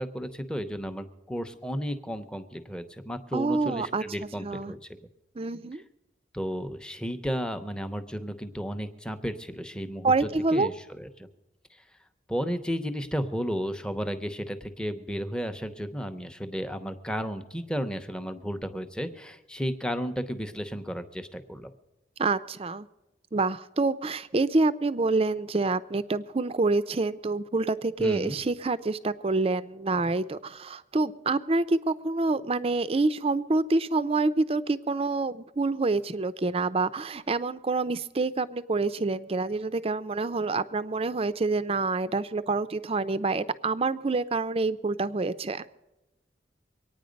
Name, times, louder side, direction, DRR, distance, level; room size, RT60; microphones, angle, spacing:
voice 1, 0.0-4.8 6.3-11.3 12.3-21.7 28.0-28.4, equal, 5° left, 9 dB, 0.8 m, -33 dB
voice 2, 3.3-4.0 4.4-4.8 5.4-5.8 10.0-10.7 22.2-22.9 23.3-45.7, right 3 dB, 35° right, 15 dB, 0.5 m, -27 dB
24.0 x 9.3 x 5.2 m, 0.97 s
head